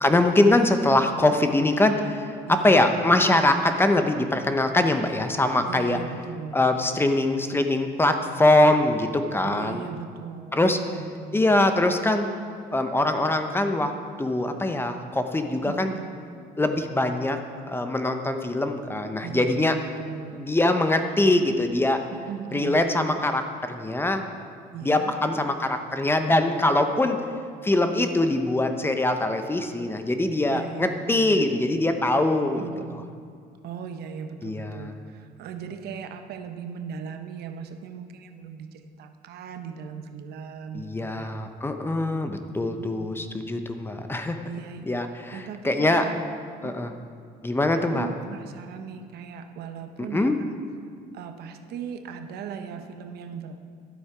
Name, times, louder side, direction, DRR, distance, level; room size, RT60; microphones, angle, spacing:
voice 1, 0.0-6.0 6.5-9.8 10.5-10.8 11.3-12.3 12.7-13.9 14.2-15.9 16.6-17.4 17.6-19.8 20.3-22.0 22.5-24.2 24.8-27.2 27.6-32.7 34.4-34.9 40.7-44.4 44.9-46.0 46.6-46.9 47.4-48.1 50.1-50.4, left 2 dB, 15° left, 7 dB, 0.7 m, -23 dB
voice 2, 2.5-2.9 5.7-6.6 9.4-11.4 15.5-16.1 19.2-20.5 22.1-23.0 24.7-25.2 26.9-27.1 30.4-31.5 32.4-33.2 33.6-41.3 42.7-43.3 44.5-45.0 45.3-46.2 46.6-46.8 47.7-50.5 51.1-53.6, right 7 dB, 75° right, 7 dB, 0.8 m, -38 dB
12.0 x 7.9 x 4.9 m, 2.2 s
cardioid pair, 110°, 17 cm